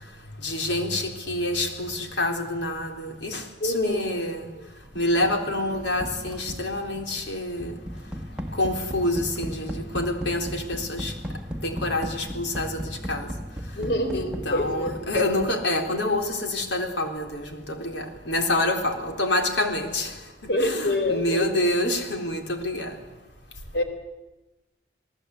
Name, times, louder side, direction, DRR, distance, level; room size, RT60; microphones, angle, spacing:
voice 1, 0.4-4.5 4.9-7.8 8.5-11.1 11.6-13.3 14.1-20.2 20.6-23.0, left 1 dB, 90° left, 4 dB, 3.8 m, -27 dB
voice 2, 3.6-4.1 13.8-15.0 20.5-21.5 23.7-23.8, left 1 dB, 65° left, 6 dB, 3.8 m, -26 dB
sound 1, 5.0-15.8, equal, 5° right, 1.7 m, -36 dB
28.0 x 18.5 x 8.4 m, 1.1 s
head